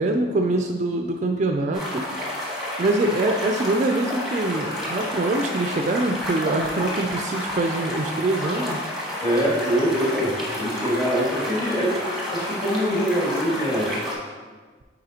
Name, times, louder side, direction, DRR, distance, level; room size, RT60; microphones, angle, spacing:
voice 1, 0.0-2.1 2.8-8.9, right 2 dB, 40° right, 3 dB, 0.3 m, -24 dB
sound 1, 1.7-14.1, left 1 dB, ahead, 1.1 m, -30 dB
voice 2, 9.2-12.0 12.3-13.9, equal, 20° left, -6 dB, 1.7 m, -24 dB
8.8 x 4.1 x 2.8 m, 1.4 s
head